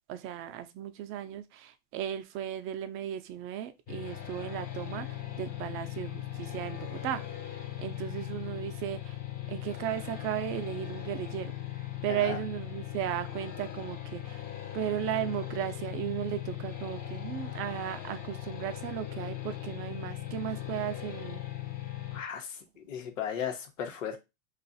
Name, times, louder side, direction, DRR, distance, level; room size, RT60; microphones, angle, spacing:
voice 1, 0.1-9.2 9.5-11.5 12.0-14.5 14.7-21.4, right 11 dB, 35° right, 0.5 m, -36 dB
sound 1, 3.9-22.2, left 13 dB, 25° left, 0.5 m, -39 dB
voice 2, 12.1-12.4 22.1-24.2, left 8 dB, 90° left, 1.0 m, -36 dB
2.5 x 2.4 x 4.0 m
supercardioid pair, 125°, 38 cm